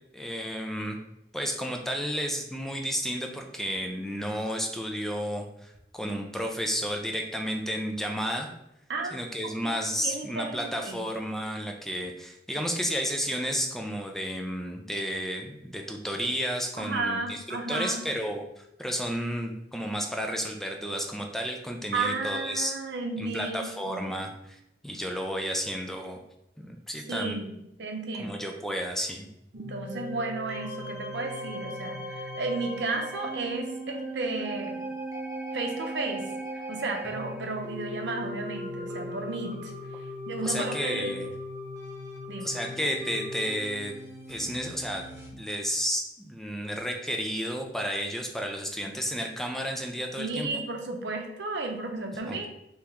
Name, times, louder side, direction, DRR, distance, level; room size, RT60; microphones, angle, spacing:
voice 1, 0.1-1.0 1.3-8.5 9.1-17.4 17.7-22.7 23.2-26.2 26.6-27.4 28.2-29.3 40.4-41.3 42.4-44.0 44.3-45.1 45.3-50.5 52.3-52.4, equal, ahead, 3 dB, 0.3 m, -32 dB
voice 2, 9.6-11.0 16.8-18.0 21.9-23.6 23.8-24.1 27.1-28.4 29.5-34.8 35.5-36.2 36.5-39.7 40.3-41.2 42.3-42.5 50.2-52.5, right 3 dB, 75° right, 3 dB, 0.6 m, -33 dB
sound 1, 29.5-45.3, equal, 15° right, 1.0 m, -38 dB
3.2 x 2.9 x 3.5 m, 0.83 s
head